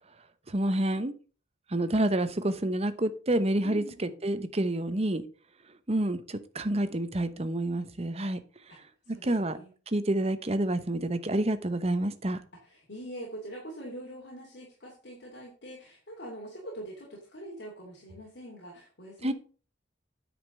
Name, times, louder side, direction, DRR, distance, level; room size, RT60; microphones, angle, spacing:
voice 1, 0.5-1.1 1.7-5.2 5.9-8.4 9.2-9.6 9.9-12.4 19.2-19.3, right 1 dB, 35° right, 0.9 m, -28 dB
voice 2, 3.6-4.1 8.7-8.8 9.1-9.7 12.6-19.3, right 1 dB, 60° left, 2.8 m, -43 dB
9.5 x 5.2 x 6.5 m
head